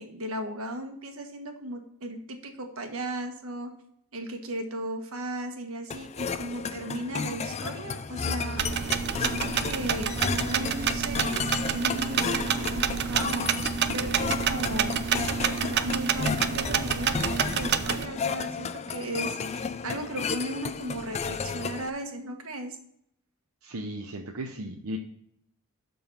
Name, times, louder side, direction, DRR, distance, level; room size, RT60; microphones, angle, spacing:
voice 1, 0.0-3.7 4.1-22.8, right 1 dB, 70° right, 4 dB, 1.4 m, -36 dB
sound 1, 5.9-21.9, left 5 dB, 30° left, 0.4 m, -33 dB
sound 2, 8.6-18.0, right 7 dB, 50° right, 0.5 m, -28 dB
voice 2, 23.6-25.0, right 1 dB, 85° right, 3 dB, 0.8 m, -36 dB
11.5 x 3.9 x 5.5 m, 0.71 s
head